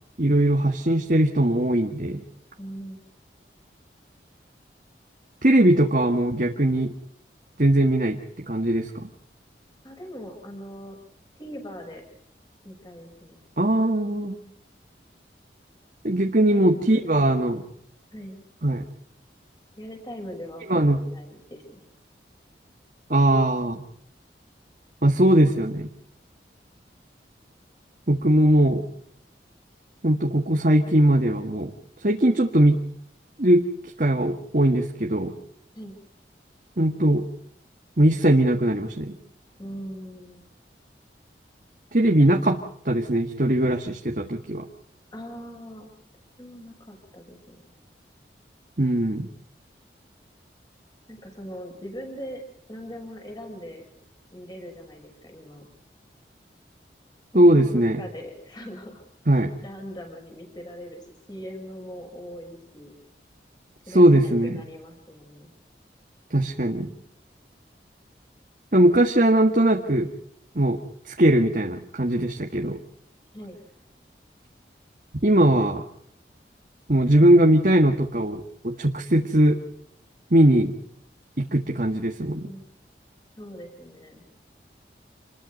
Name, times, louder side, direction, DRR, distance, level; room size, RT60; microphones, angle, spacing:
voice 1, 0.2-2.2 5.4-6.9 7.6-8.2 8.5-9.1 13.6-14.4 16.0-17.6 18.6-18.8 20.7-21.0 23.1-23.8 25.0-25.9 28.1-28.8 30.0-31.7 32.0-32.8 33.4-33.6 34.0-35.3 36.8-37.2 38.0-39.2 41.9-42.6 42.8-44.6 48.8-49.3 57.3-58.0 59.3-59.5 63.9-64.6 66.3-66.9 68.7-70.1 70.5-70.8 71.1-72.8 75.2-75.8 76.9-79.6 80.3-80.7 81.4-82.4, right 1 dB, 50° right, 2 dB, 1.8 m, -20 dB
voice 2, 2.6-3.0 9.8-11.0 11.3-12.0 12.6-13.4 16.4-17.5 18.1-18.4 19.8-21.8 35.7-36.0 39.6-40.4 42.1-42.5 45.1-45.9 46.4-47.6 51.1-52.4 52.7-53.8 54.3-55.7 57.3-59.0 59.3-61.0 61.3-62.9 63.9-65.5 73.3-73.6 82.4-82.6 83.4-84.2, equal, 25° left, 3 dB, 6.5 m, -40 dB
28.0 x 21.5 x 5.5 m, 0.65 s
head